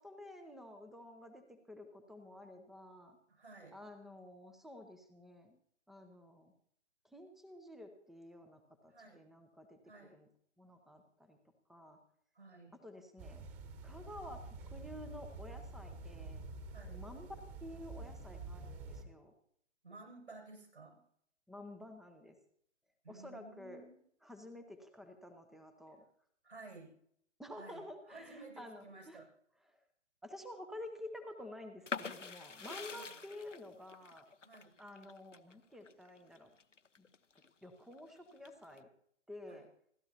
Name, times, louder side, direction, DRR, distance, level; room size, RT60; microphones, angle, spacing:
voice 1, 0.0-3.2 3.7-5.6 5.9-6.5 7.0-9.8 10.1-10.3 10.6-11.4 11.7-12.0 12.8-13.5 13.8-16.4 16.9-19.3 21.5-22.4 23.1-23.8 24.2-26.0 27.4-29.2 29.7-29.8 30.2-34.3 34.8-36.5 37.0-37.1 37.6-38.9 39.3-39.7, left 1 dB, ahead, 8 dB, 0.6 m, -51 dB
voice 2, 3.3-3.8 8.9-9.3 9.9-10.2 12.3-12.8 16.7-17.0 19.8-21.0 23.0-24.0 26.4-27.0 27.5-29.3 32.9-33.1 34.4-34.7 39.5-39.7, right 3 dB, 70° right, 1 dB, 7.1 m, -54 dB
sound 1, 13.2-19.0, right 3 dB, 20° right, 1.4 m, -48 dB
sound 2, 31.9-37.5 37.9-38.8, left 5 dB, 85° left, 0.9 m, -45 dB
28.5 x 12.5 x 2.9 m, 0.68 s
figure-of-eight pair, 125°, 36 cm